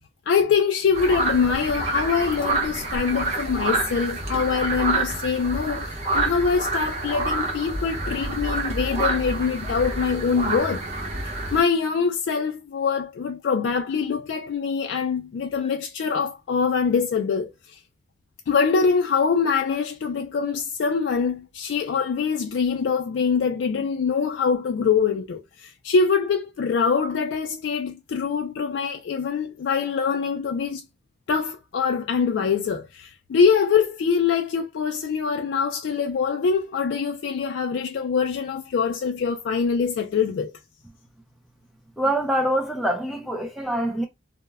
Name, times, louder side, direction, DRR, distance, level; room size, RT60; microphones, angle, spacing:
voice 1, 0.3-10.8 11.5-17.8 18.5-30.9 31.3-40.6, left 5 dB, 80° left, 0.3 m, -24 dB
sound 1, 0.9-11.6, right 2 dB, 35° right, 0.7 m, -27 dB
voice 2, 42.0-44.1, right 1 dB, ahead, 0.3 m, -24 dB
2.1 x 2.1 x 3.3 m
head